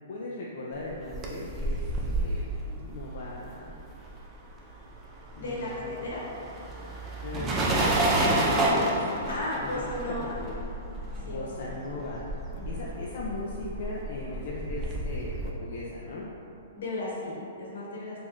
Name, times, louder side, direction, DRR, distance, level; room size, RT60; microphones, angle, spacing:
voice 1, 0.1-1.8 2.1-3.7 5.4-6.1 7.2-9.3 9.6-9.9 10.4-10.5 11.2-12.2 12.6-16.3, left 2 dB, 55° left, -4 dB, 0.4 m, -38 dB
sound 1, 0.9-4.5 4.8-15.5, right 1 dB, 20° right, 0.4 m, -30 dB
voice 2, 5.3-6.2 9.3-10.4 11.2-11.8 12.5-12.9 16.7-18.2, left 1 dB, 75° left, -5 dB, 1.0 m, -35 dB
3.7 x 2.5 x 3.0 m, 2.8 s
hypercardioid pair, 155°, 0 cm